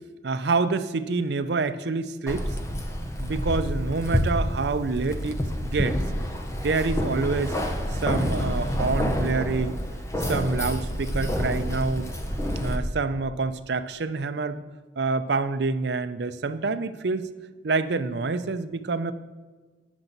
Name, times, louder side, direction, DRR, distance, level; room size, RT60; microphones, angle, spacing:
voice 1, 0.2-2.5 3.2-6.0 6.6-7.6 8.0-9.8 10.3-12.1 12.6-14.6 15.0-17.3 17.6-19.1, right 4 dB, 60° right, 10 dB, 0.5 m, -27 dB
Keys jangling, 2.3-12.8, equal, 15° left, 0.7 m, -28 dB
9.9 x 7.4 x 4.0 m, 1.4 s
head